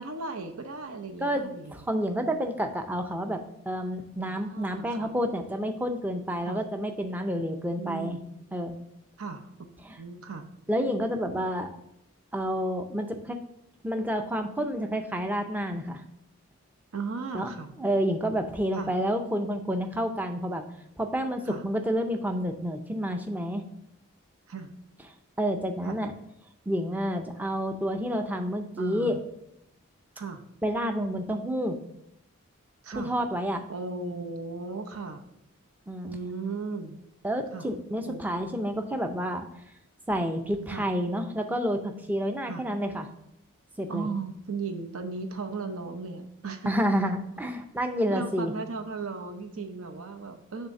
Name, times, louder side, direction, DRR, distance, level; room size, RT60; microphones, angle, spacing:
voice 1, 0.0-1.8 4.2-5.1 6.4-6.6 7.8-8.3 9.2-9.5 10.0-10.5 16.9-17.8 18.7-18.9 21.5-21.6 24.5-24.7 25.8-26.0 28.8-29.2 30.2-30.4 32.8-33.1 33.7-35.2 36.0-37.0 37.5-37.7 38.0-38.2 40.7-40.8 42.5-42.6 43.9-46.8 48.1-50.7, right 4 dB, 75° right, 7 dB, 0.7 m, -36 dB
voice 2, 1.2-8.2 8.5-8.8 9.8-10.0 10.7-11.8 12.3-13.4 13.8-16.0 17.3-17.5 17.8-20.6 21.0-23.6 25.4-26.1 26.7-29.2 30.6-31.8 33.0-33.7 35.9-36.2 37.2-39.5 40.1-43.1 43.8-44.1 46.7-48.5, equal, 10° right, 6 dB, 0.5 m, -29 dB
6.6 x 3.5 x 5.7 m, 0.81 s
head